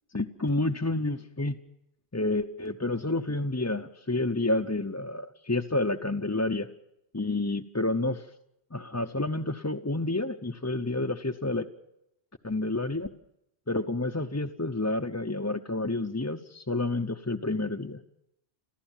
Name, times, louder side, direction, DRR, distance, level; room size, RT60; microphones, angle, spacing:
voice 1, 0.1-1.6 2.1-6.7 7.1-8.2 8.7-11.7 12.4-13.1 13.7-18.0, left 2 dB, 15° left, 3 dB, 0.7 m, -29 dB
27.5 x 15.0 x 7.2 m, 0.84 s
omnidirectional pair, 1.1 m